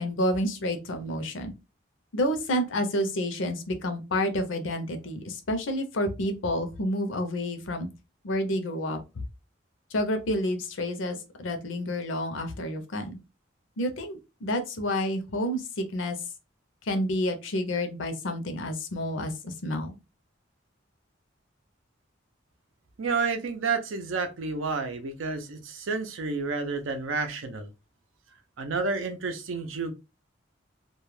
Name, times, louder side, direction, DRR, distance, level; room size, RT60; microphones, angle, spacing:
voice 1, 0.0-1.5 2.1-7.9 8.2-9.2 9.9-13.2 13.8-16.2 16.8-20.0, left 1 dB, 75° left, 0.6 m, -29 dB
voice 2, 23.0-27.7 28.6-29.9, right 4 dB, 85° right, 0.5 m, -30 dB
2.3 x 2.1 x 3.1 m
head